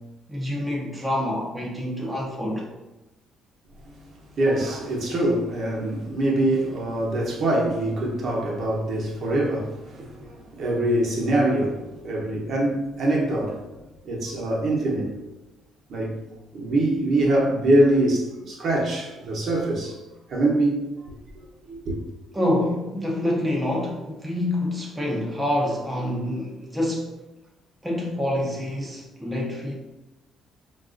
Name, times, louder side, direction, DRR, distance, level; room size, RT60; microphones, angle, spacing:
voice 1, 0.3-2.7 22.3-27.1 27.8-29.7, left 1 dB, 5° right, 0.5 m, -27 dB
voice 2, 4.1-13.6 14.0-15.2 15.9-16.2 16.5-20.0 20.3-22.0, right 1 dB, 50° right, 0.8 m, -24 dB
3.9 x 2.3 x 2.4 m
cardioid pair, 125°, 0 cm